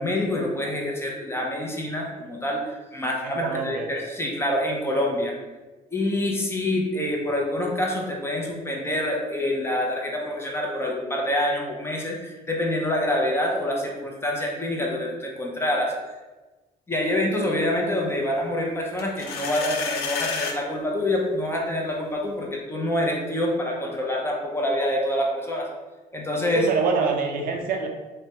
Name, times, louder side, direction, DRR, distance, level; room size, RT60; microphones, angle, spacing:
voice 1, 0.0-5.3 5.9-15.9 16.9-25.7 26.1-26.7, left 1 dB, 15° left, -1 dB, 0.5 m, -26 dB
voice 2, 3.2-3.9 26.5-27.9, right 5 dB, 60° right, 2 dB, 0.4 m, -25 dB
sound 1, 19.0-20.6, left 5 dB, 65° left, 0.5 m, -30 dB
3.0 x 2.2 x 2.8 m, 1.2 s
cardioid pair, 110°, 17 cm